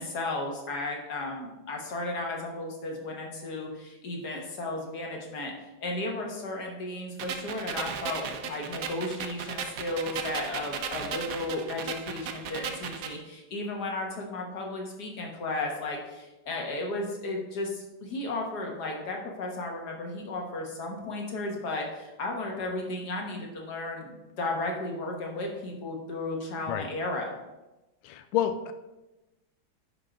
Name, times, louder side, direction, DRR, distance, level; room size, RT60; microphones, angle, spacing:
voice 1, 0.0-5.5 5.8-27.4, left 2 dB, 55° left, 0 dB, 1.9 m, -34 dB
sound 1, 7.2-13.2, right 6 dB, 65° right, 0.8 m, -36 dB
voice 2, 28.0-28.7, left 10 dB, 90° left, 8 dB, 1.4 m, -29 dB
10.5 x 3.9 x 5.0 m, 1.0 s
omnidirectional pair, 2.2 m